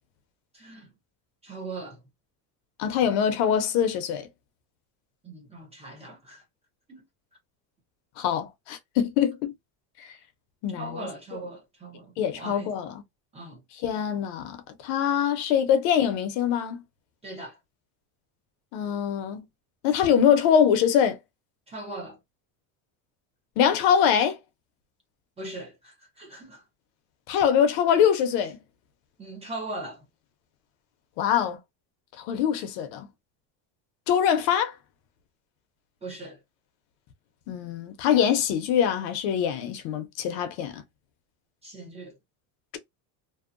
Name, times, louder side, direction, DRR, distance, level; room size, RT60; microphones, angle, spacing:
voice 1, 0.5-0.9 1.4-2.0 5.2-6.4 6.9-7.0 10.7-12.7 13.3-13.6 17.2-17.6 21.7-22.2 25.4-26.6 29.2-30.0 36.0-36.4 41.6-42.2, right 2 dB, 15° right, 0.5 m, -39 dB
voice 2, 2.8-4.3 8.2-9.5 10.0-10.1 10.6-11.1 12.2-13.0 13.8-14.6 14.8-16.8 18.7-19.4 19.8-21.2 23.6-24.4 27.3-28.6 31.2-31.6 32.2-33.1 34.1-34.7 37.5-40.8, left 8 dB, 65° left, 0.7 m, -23 dB
2.7 x 2.1 x 2.4 m
cardioid pair, 165°, 44 cm